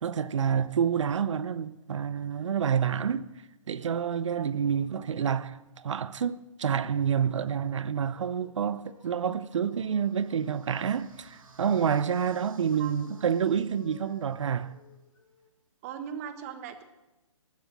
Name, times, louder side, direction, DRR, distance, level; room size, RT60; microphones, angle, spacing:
voice 1, 0.0-3.3 3.7-14.7, right 7 dB, 60° right, 0.8 m, -28 dB
sound 1, 7.9-11.1 12.0-12.5 13.0-15.5, left 3 dB, 70° left, 2.9 m, -57 dB
sound 2, 9.4-14.5, right 3 dB, 80° right, 2.7 m, -58 dB
voice 2, 15.8-16.8, right 8 dB, 25° right, 1.3 m, -39 dB
19.0 x 9.5 x 7.4 m
hypercardioid pair, 155°, 17 cm